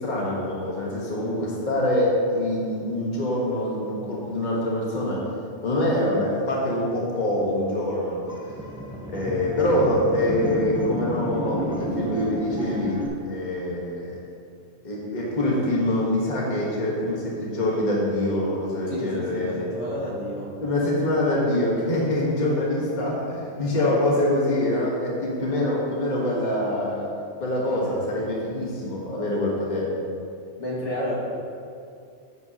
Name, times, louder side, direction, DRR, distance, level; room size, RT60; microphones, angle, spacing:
voice 1, 0.0-5.3 5.6-8.2 9.1-14.1 14.8-19.6 20.6-27.1 27.4-29.9, left 1 dB, 40° left, -4 dB, 1.4 m, -25 dB
sound 1, 8.3-13.1, equal, 5° right, 0.8 m, -31 dB
voice 2, 18.9-20.5 27.6-28.1 30.6-31.2, equal, 80° left, -6 dB, 2.2 m, -31 dB
9.7 x 8.3 x 2.9 m, 2.4 s
omnidirectional pair, 1.2 m